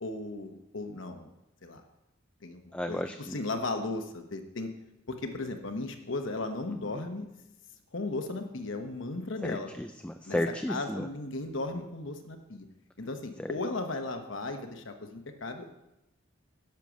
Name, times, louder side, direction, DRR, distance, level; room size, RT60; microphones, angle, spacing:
voice 1, 0.0-1.3 1.6-1.8 2.4-2.6 2.9-3.0 3.3-4.7 5.1-7.3 7.9-9.7 10.3-10.4 10.7-12.7 13.0-15.8, left 2 dB, 65° left, 5 dB, 1.0 m, -36 dB
voice 2, 2.7-3.4 6.7-7.0 9.4-11.1 13.4-13.5, left 1 dB, 5° left, 7 dB, 0.4 m, -34 dB
10.5 x 6.6 x 6.2 m, 0.90 s
head